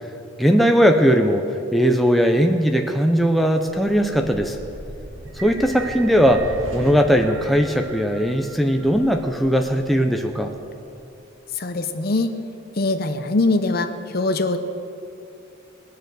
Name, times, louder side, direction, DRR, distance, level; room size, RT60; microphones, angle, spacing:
voice 1, 0.4-4.6 5.4-10.5, equal, ahead, 3 dB, 0.5 m, -19 dB
sound 1, 3.6-11.1, right 1 dB, 85° right, 2.4 m, -39 dB
sound 2, 5.3-9.6, right 3 dB, 70° right, 1.4 m, -41 dB
voice 2, 11.6-12.3 12.8-13.9 14.1-14.6, left 2 dB, 50° left, 9 dB, 0.7 m, -22 dB
20.0 x 6.7 x 6.4 m, 2.7 s
head